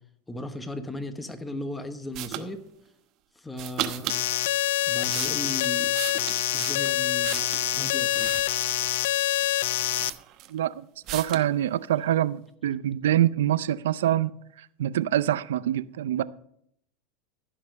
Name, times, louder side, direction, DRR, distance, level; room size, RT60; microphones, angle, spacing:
voice 1, 0.3-2.6 3.4-4.1 4.9-5.9 6.5-8.3, left 1 dB, 10° left, 1.2 m, -36 dB
sound 1, 2.1-2.5 3.5-4.2 4.8-7.7 8.1-8.9 9.4-9.5 9.8-10.6 11.1-11.5, right 13 dB, 50° right, 0.9 m, -36 dB
sound 2, 4.1-10.1, left 15 dB, 75° left, 0.4 m, -26 dB
voice 2, 10.5-10.8 11.1-14.3 14.8-16.2, right 12 dB, 85° right, 0.5 m, -25 dB
15.0 x 5.9 x 5.3 m
supercardioid pair, 115°, 0 cm